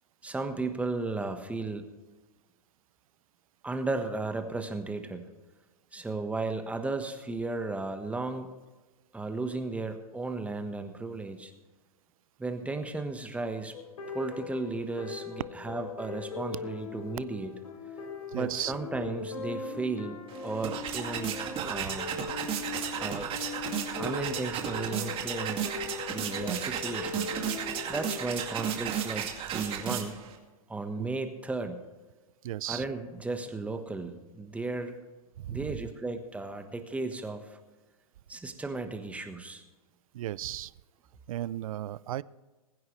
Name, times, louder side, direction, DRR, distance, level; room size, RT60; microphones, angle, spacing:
voice 1, 0.2-1.9 3.6-5.3 5.9-8.5 9.1-11.5 12.4-13.8 14.1-17.5 18.3-21.4 21.7-22.1 23.0-23.3 24.0-25.7 26.1-27.3 27.9-30.2 30.7-31.8 32.7-35.0 35.5-37.6 38.3-39.6, right 3 dB, 5° right, 6 dB, 1.3 m, -35 dB
sound 1, 13.7-28.2, left 5 dB, 80° left, 3.6 m, -40 dB
voice 2, 18.3-18.7 21.9-22.0 31.0-31.1 32.4-32.8 35.4-35.8 40.1-40.7 41.3-42.2, right 13 dB, 70° right, 20 dB, 0.5 m, -35 dB
sound 2, 20.3-30.4, right 8 dB, 30° right, 2.3 m, -34 dB
21.0 x 9.5 x 3.3 m, 1.2 s
hypercardioid pair, 120°, 19 cm